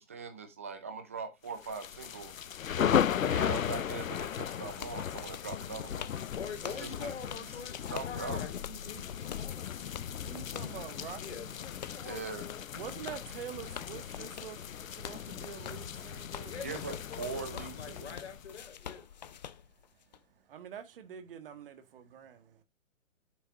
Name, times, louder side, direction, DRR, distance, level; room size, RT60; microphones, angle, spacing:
voice 1, 0.0-6.1 6.6-7.4 7.9-8.4 12.0-12.4 16.6-18.1, right 5 dB, 10° right, 0.5 m, -41 dB
sound 1, 1.6-18.6, left 9 dB, 80° left, 0.7 m, -36 dB
sound 2, 3.6-20.2, left 8 dB, 35° left, 0.6 m, -48 dB
voice 2, 6.3-10.0 11.2-12.7 16.4-19.1, left 6 dB, 55° left, 3.7 m, -45 dB
voice 3, 10.0-11.5 12.7-16.6 19.1-22.6, right 9 dB, 45° right, 1.5 m, -47 dB
9.1 x 8.2 x 2.4 m
hypercardioid pair, 150°, 39 cm